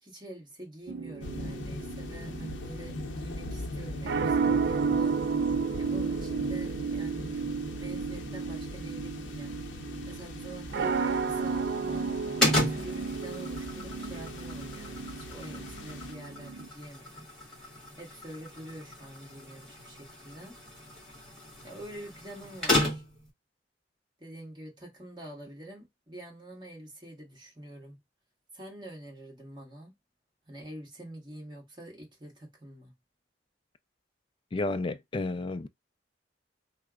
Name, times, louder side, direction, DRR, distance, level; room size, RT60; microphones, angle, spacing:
voice 1, 0.0-5.2 5.8-7.3 7.7-9.6 10.1-12.1 12.5-17.3 17.9-20.6 21.6-23.0 24.2-28.0 28.5-29.9 30.5-32.9, right 1 dB, 25° right, 1.4 m, -46 dB
sound 1, 0.9-16.7, right 5 dB, 55° right, 0.4 m, -33 dB
sound 2, 1.2-16.1, left 2 dB, 90° left, 0.7 m, -41 dB
sound 3, 12.4-23.3, left 1 dB, 5° left, 1.4 m, -34 dB
voice 2, 34.5-35.7, left 2 dB, 30° left, 0.3 m, -31 dB
3.2 x 2.0 x 3.5 m
head